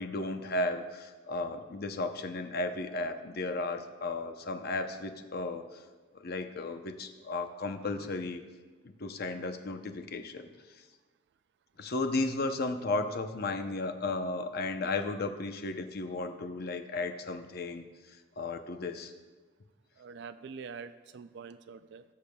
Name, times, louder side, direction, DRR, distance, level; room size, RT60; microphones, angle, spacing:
voice 1, 0.0-5.8 6.1-8.4 8.8-10.5 11.8-17.8 18.4-19.1, left 2 dB, 55° left, 7 dB, 0.7 m, -34 dB
voice 2, 20.0-22.0, right 5 dB, 65° right, 12 dB, 0.4 m, -45 dB
18.0 x 6.7 x 2.3 m, 1.3 s
head